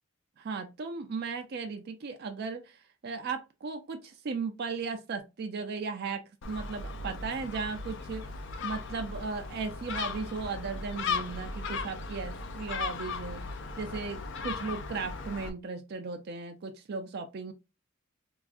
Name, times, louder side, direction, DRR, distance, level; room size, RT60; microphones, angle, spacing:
voice 1, 0.4-13.4 13.8-17.5, right 4 dB, 50° right, 6 dB, 0.4 m, -36 dB
Gull seagull, 6.4-15.5, left 4 dB, 55° left, 0.5 m, -37 dB
4.6 x 2.5 x 2.4 m, 0.27 s
head